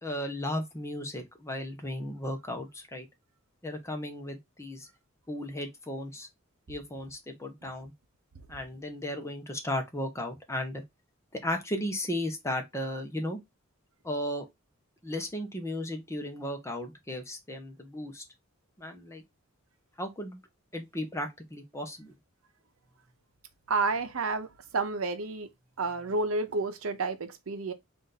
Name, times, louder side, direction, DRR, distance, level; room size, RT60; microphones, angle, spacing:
voice 1, 0.0-3.1 3.6-4.9 5.3-6.3 6.7-7.9 8.5-10.8 11.3-13.4 14.0-14.5 15.0-18.2 18.8-19.2 20.0-20.4 20.7-22.1, left 1 dB, 15° left, 0.9 m, -35 dB
voice 2, 23.7-25.5 25.8-27.7, right 3 dB, 80° right, 0.7 m, -30 dB
4.0 x 2.6 x 3.9 m
head